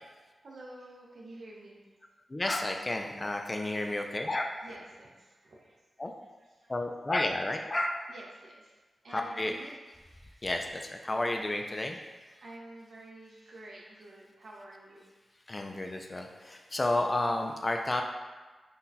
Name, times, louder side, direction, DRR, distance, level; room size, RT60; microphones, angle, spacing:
voice 1, 0.4-1.9 4.6-5.8 6.4-6.8 8.1-10.5 11.0-11.9 12.2-15.1, right 1 dB, 70° right, -3 dB, 0.5 m, -50 dB
voice 2, 2.3-4.6 6.0-6.1 6.7-8.0 9.1-9.6 10.4-12.0 15.5-18.0, left 1 dB, 30° left, 3 dB, 0.3 m, -31 dB
2.7 x 2.2 x 3.8 m, 1.3 s
cardioid pair, 70°, 0 cm